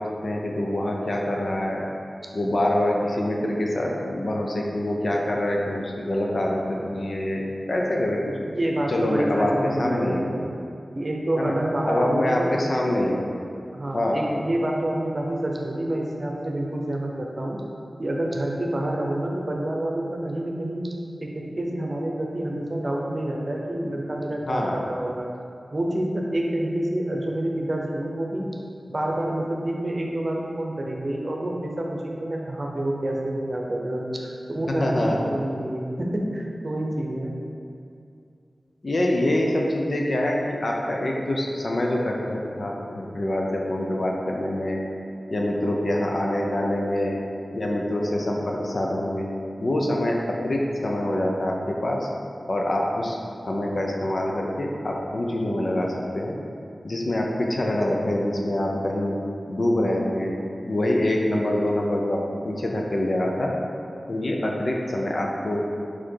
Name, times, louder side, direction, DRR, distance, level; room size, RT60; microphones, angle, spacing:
voice 1, 0.0-1.8 2.3-8.3 8.9-9.5 9.8-10.3 11.4-11.6 11.9-13.2 13.9-14.2 24.5-24.9 34.7-35.2 38.8-44.8 45.3-47.2 47.5-49.3 49.6-52.1 52.5-53.2 53.5-56.4 56.8-59.2 59.5-60.4 60.6-62.2 62.4-63.5 64.1-65.6, left 1 dB, 55° left, -1 dB, 0.7 m, -25 dB
voice 2, 8.6-10.5 10.9-12.5 13.7-17.6 18.0-20.9 21.2-25.3 25.7-28.5 28.9-37.4, right 1 dB, 45° right, -1 dB, 0.8 m, -28 dB
4.9 x 4.2 x 4.6 m, 2.5 s
wide cardioid pair, 75°, 0 cm